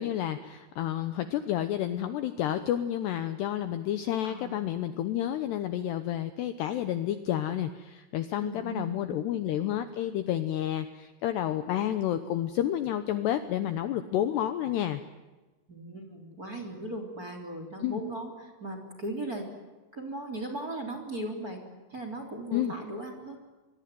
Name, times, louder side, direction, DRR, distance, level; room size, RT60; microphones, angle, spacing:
voice 1, 0.0-15.0 17.8-18.0 22.5-22.7, left 11 dB, 75° left, 10 dB, 2.6 m, -30 dB
voice 2, 4.2-4.6 8.4-9.2 15.7-19.5 19.9-21.6 21.9-23.4, right 1 dB, 20° right, 4 dB, 3.2 m, -38 dB
24.5 x 23.0 x 9.3 m, 1.2 s
omnidirectional pair, 5.8 m